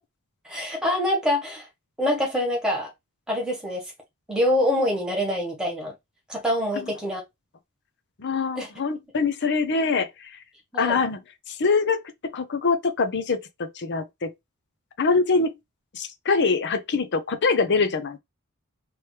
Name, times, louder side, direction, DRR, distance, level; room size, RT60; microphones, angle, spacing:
voice 1, 0.4-1.7 2.0-2.9 3.3-3.8 4.3-5.9 6.3-7.2 8.6-8.7 10.7-11.0, left 1 dB, 5° right, 1.5 m, -25 dB
voice 2, 8.2-10.3 10.8-11.2 11.5-14.3 15.0-15.5 15.9-18.2, left 4 dB, 55° left, 0.7 m, -24 dB
3.1 x 3.1 x 3.2 m
head